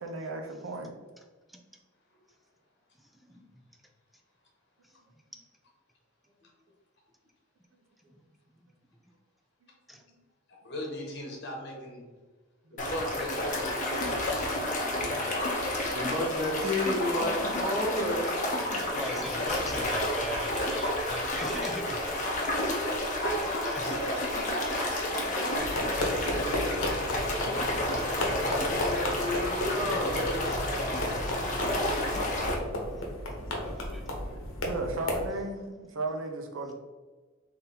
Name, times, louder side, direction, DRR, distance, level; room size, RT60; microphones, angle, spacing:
voice 1, 0.0-0.9 12.6-12.7 34.6-36.7, right 2 dB, 70° right, 4 dB, 0.7 m, -35 dB
voice 2, 3.0-3.5 4.8-4.9 8.1-8.2 8.5-8.7 9.9-10.0 18.9-22.0 23.7-24.0 28.2-28.9 31.1-31.3 33.5-34.2, equal, ahead, 3 dB, 0.4 m, -40 dB
voice 3, 10.6-12.0 12.7-14.4 19.1-19.8 23.2-27.3 31.1-32.6, equal, 55° left, -1 dB, 1.2 m, -39 dB
sound 1, 12.8-32.5, left 1 dB, 40° left, 0.8 m, -31 dB
voice 4, 15.8-18.4 28.1-30.5, left 1 dB, 25° right, -4 dB, 0.8 m, -32 dB
sound 2, 25.6-35.3, left 1 dB, 75° left, 0.9 m, -33 dB
3.8 x 2.8 x 4.1 m, 1.3 s
head